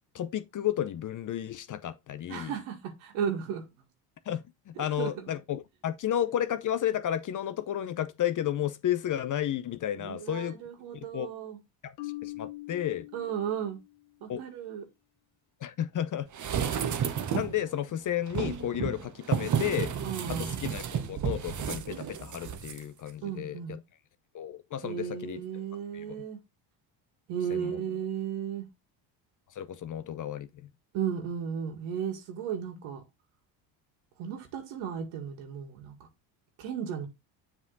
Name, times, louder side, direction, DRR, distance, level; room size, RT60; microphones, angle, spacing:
voice 1, 0.1-2.5 4.3-10.6 11.1-11.3 11.8-13.1 14.3-14.4 15.6-16.3 16.6-16.8 17.3-19.9 20.3-23.6 24.3-25.4 25.9-26.2 27.5-27.8 29.5-30.7, left 11 dB, 40° left, 0.6 m, -32 dB
voice 2, 2.3-3.6 4.8-5.3 10.0-11.6 13.1-13.8 14.2-14.8 20.0-20.7 23.2-23.8 24.8-26.4 27.3-28.7 30.9-33.0 34.2-36.0 36.6-37.1, right 8 dB, 85° right, 1.9 m, -35 dB
Marimba xylophone, 12.0-14.0, left 19 dB, 90° left, 1.0 m, -42 dB
sound 1, 16.3-17.6 18.3-22.8 23.1-23.2, right 8 dB, 40° right, 1.0 m, -32 dB
7.2 x 3.7 x 3.9 m
cardioid pair, 100°, 48 cm